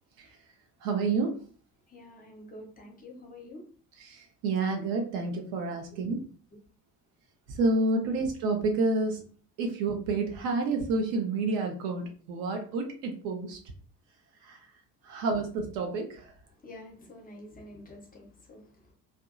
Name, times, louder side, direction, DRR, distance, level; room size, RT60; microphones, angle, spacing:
voice 1, 0.8-1.4 4.0-6.2 7.5-9.2 9.6-13.6 14.4-14.6 15.0-16.3, right 3 dB, 45° right, 3 dB, 0.5 m, -29 dB
voice 2, 1.9-3.6 5.9-6.2 8.0-8.2 16.5-18.9, left 1 dB, 15° left, -1 dB, 0.7 m, -48 dB
2.6 x 2.2 x 2.5 m, 0.43 s
figure-of-eight pair, 60°, 50 cm